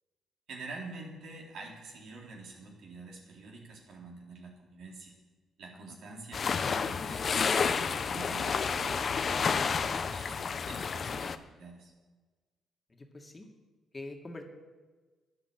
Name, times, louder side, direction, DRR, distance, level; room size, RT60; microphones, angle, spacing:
voice 1, 0.5-5.1 5.6-11.9, right 3 dB, 75° right, -1 dB, 4.1 m, -47 dB
sound 1, 6.3-11.4, left 5 dB, 45° left, 0.8 m, -30 dB
voice 2, 12.9-13.5 13.9-14.4, left 2 dB, 25° left, 3 dB, 2.1 m, -44 dB
12.0 x 10.5 x 8.8 m, 1.3 s
cardioid pair, 90°, 0 cm